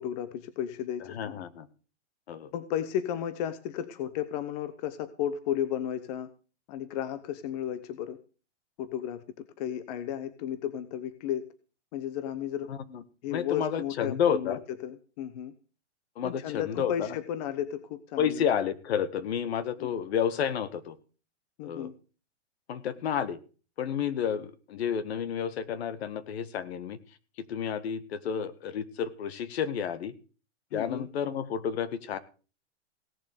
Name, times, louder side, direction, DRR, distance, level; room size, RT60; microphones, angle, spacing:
voice 1, 0.0-1.4 2.5-6.3 6.7-8.2 8.8-9.2 9.6-11.5 11.9-12.7 13.2-14.6 14.8-15.5 16.2-18.5 19.8-19.9 21.6-21.9 30.7-31.1, left 10 dB, 35° left, 12 dB, 1.0 m, -34 dB
voice 2, 1.1-1.7 2.3-2.5 12.7-13.0 13.3-14.6 16.2-17.2 18.2-21.0 21.6-21.9 22.7-23.4 23.8-27.0 27.5-30.1 30.7-32.2, left 8 dB, 60° left, 14 dB, 1.7 m, -30 dB
17.5 x 7.2 x 6.8 m, 0.37 s
hypercardioid pair, 155°, 36 cm